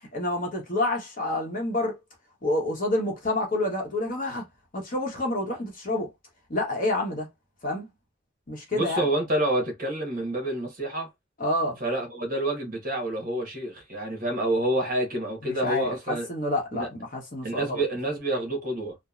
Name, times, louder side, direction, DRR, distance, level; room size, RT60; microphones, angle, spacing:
voice 1, 0.1-2.0 2.4-4.4 4.7-6.1 6.5-7.3 7.6-7.9 8.5-9.1 11.4-11.8 15.4-17.8, left 1 dB, 40° left, 0.8 m, -28 dB
voice 2, 8.7-11.1 11.8-16.3 16.7-16.9 17.4-19.0, right 1 dB, 45° right, 1.0 m, -28 dB
3.0 x 2.0 x 2.4 m
head